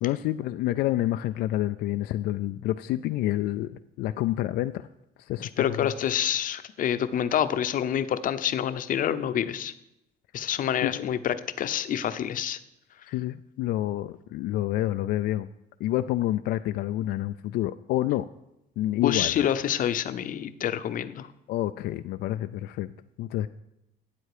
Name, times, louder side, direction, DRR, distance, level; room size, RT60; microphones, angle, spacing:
voice 1, 0.0-4.9 5.2-5.9 10.8-11.0 13.1-15.5 15.8-18.3 18.8-19.5 21.5-22.9 23.2-23.5, left 14 dB, 80° left, 9 dB, 0.4 m, -28 dB
voice 2, 5.4-9.7 10.3-12.6 19.0-21.3, left 10 dB, 55° left, 11 dB, 0.8 m, -27 dB
12.5 x 8.7 x 4.9 m, 0.86 s
cardioid pair, 110°, 17 cm